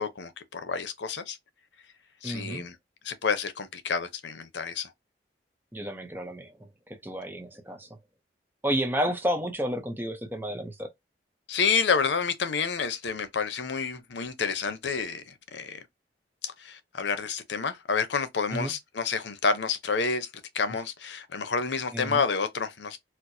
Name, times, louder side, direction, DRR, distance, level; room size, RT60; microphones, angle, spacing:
voice 1, 0.0-1.4 2.2-2.8 3.0-4.9 11.5-15.8 16.4-20.3 20.5-23.0, left 5 dB, 85° left, 0.7 m, -29 dB
voice 2, 2.2-2.6 5.7-6.6 6.9-7.9 8.6-10.9 18.5-18.7 21.9-22.2, equal, 10° right, 0.6 m, -31 dB
4.4 x 2.0 x 2.6 m
head